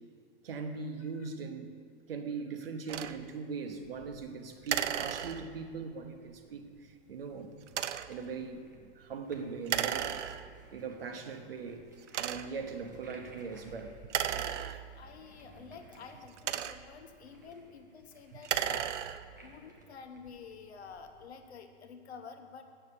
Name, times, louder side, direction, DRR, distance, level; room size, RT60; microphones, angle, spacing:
voice 1, 0.4-1.7 2.1-7.5 8.1-10.1 10.7-11.9 12.2-14.0, right 5 dB, 55° right, 6 dB, 1.0 m, -40 dB
sound 1, 2.9-3.2 4.7-5.7 7.7-8.2 9.7-10.7 11.3-11.4 12.1-12.7 14.0-15.2 16.1-17.0 18.3-19.4, right 10 dB, 85° right, 0.6 m, -35 dB
sound 2, 3.6-21.3, equal, 20° right, 0.4 m, -58 dB
voice 2, 14.3-18.9 19.4-22.6, left 5 dB, 65° left, 6 dB, 1.1 m, -49 dB
8.1 x 6.8 x 8.4 m, 2.1 s
hypercardioid pair, 175°, 35 cm